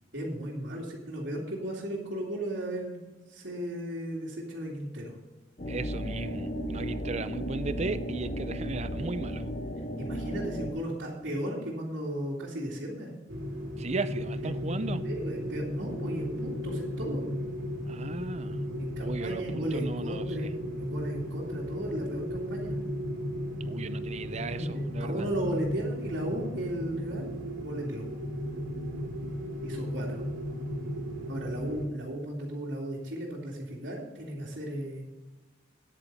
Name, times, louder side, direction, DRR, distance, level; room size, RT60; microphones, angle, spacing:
voice 1, 0.1-3.0 3.3-5.1 10.0-13.1 15.0-17.3 18.8-22.8 24.5-28.0 29.6-30.2 31.3-35.0, right 1 dB, 70° right, -8 dB, 2.5 m, -35 dB
sound 1, 5.6-10.7, equal, 40° left, 1.2 m, -34 dB
voice 2, 5.7-9.5 13.8-15.0 17.9-18.6 19.0-20.5 23.6-25.3, right 3 dB, 35° right, 13 dB, 0.5 m, -36 dB
sound 2, 13.3-31.9, equal, 90° right, 2.6 m, -35 dB
9.9 x 8.8 x 5.4 m, 1.2 s
head